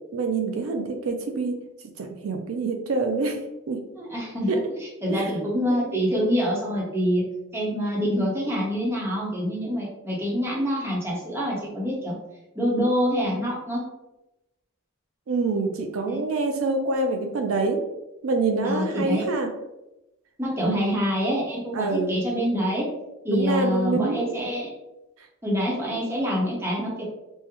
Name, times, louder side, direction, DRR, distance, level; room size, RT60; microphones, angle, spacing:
voice 1, 0.1-1.6 2.0-3.9 4.5-4.6 5.1-6.0 15.3-17.8 18.2-19.5 20.6-21.0 21.7-22.2 23.3-24.3 25.2-25.3, right 3 dB, 75° right, 4 dB, 0.4 m, -26 dB
voice 2, 4.0-4.6 5.0-7.2 7.5-12.1 12.5-13.8 16.1-16.2 18.6-19.2 20.4-22.9 23.2-24.7 25.4-27.0, equal, 10° right, -5 dB, 0.8 m, -26 dB
3.5 x 2.1 x 2.9 m, 0.94 s
head